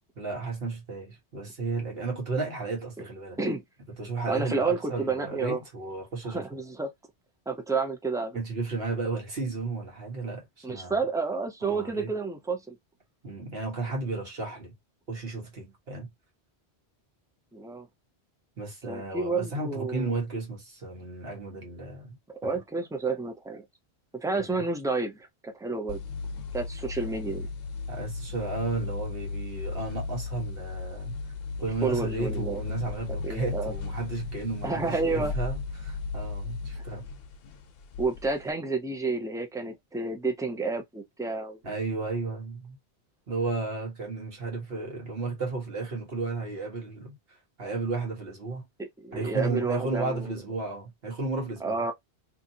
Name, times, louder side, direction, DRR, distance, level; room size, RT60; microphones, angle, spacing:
voice 1, 0.2-3.4 4.0-6.5 8.3-11.0 11.6-12.1 13.2-14.7 15.1-16.1 18.6-22.2 22.4-22.6 24.4-24.5 27.9-31.2 31.6-37.1 41.6-42.8 43.3-48.7 49.1-51.8, right 3 dB, 65° right, 1.5 m, -33 dB
voice 2, 4.3-5.6 6.3-6.9 7.5-8.4 10.6-12.8 17.5-17.9 18.9-20.2 22.3-23.6 24.1-26.0 26.5-27.5 31.8-32.6 33.2-33.7 34.6-35.4 38.0-41.6 48.8-50.3 51.6-51.9, right 3 dB, 5° right, 0.4 m, -30 dB
sound 1, 25.9-38.5, left 4 dB, 65° left, 0.7 m, -35 dB
2.9 x 2.5 x 2.6 m
omnidirectional pair, 1.1 m